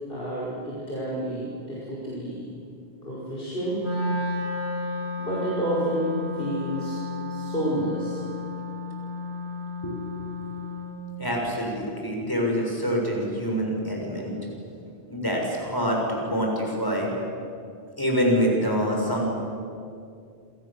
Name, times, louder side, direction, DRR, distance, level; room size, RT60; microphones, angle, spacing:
voice 1, 0.1-2.5 3.0-3.8 5.2-7.0 7.3-8.2, right 1 dB, 60° left, -6 dB, 5.9 m, -29 dB
Wind instrument woodwind instrument, 3.8-11.0, left 2 dB, 90° left, 8.2 m, -32 dB
voice 2, 11.2-14.3 15.1-17.1 18.0-19.3, equal, 20° left, -1 dB, 6.9 m, -25 dB
28.5 x 27.0 x 7.6 m, 2.4 s
omnidirectional pair, 1.1 m